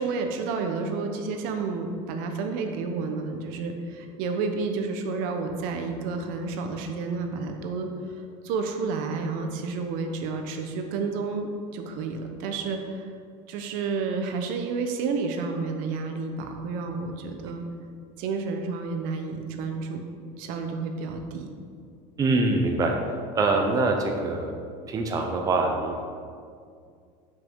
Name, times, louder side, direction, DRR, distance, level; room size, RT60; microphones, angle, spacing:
voice 1, 0.0-13.1 13.5-17.6 18.2-20.0 20.4-21.5, right 4 dB, 65° right, 5 dB, 0.9 m, -30 dB
voice 2, 22.2-22.9 23.3-24.5 24.9-26.0, right 3 dB, 20° right, 2 dB, 0.7 m, -24 dB
7.6 x 5.7 x 4.6 m, 2.3 s
cardioid pair, 145°, 15 cm